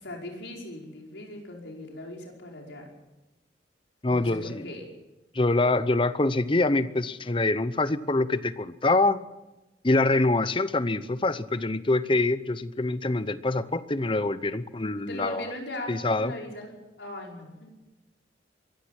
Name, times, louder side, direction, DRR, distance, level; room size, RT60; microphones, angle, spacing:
voice 1, 0.0-2.9 4.0-4.9 15.1-17.7, left 1 dB, 85° left, 0 dB, 5.5 m, -39 dB
voice 2, 4.0-4.7 5.3-9.2 9.8-15.5 15.9-16.4, left 2 dB, 30° left, 14 dB, 0.8 m, -25 dB
23.0 x 15.0 x 7.6 m, 1.0 s
head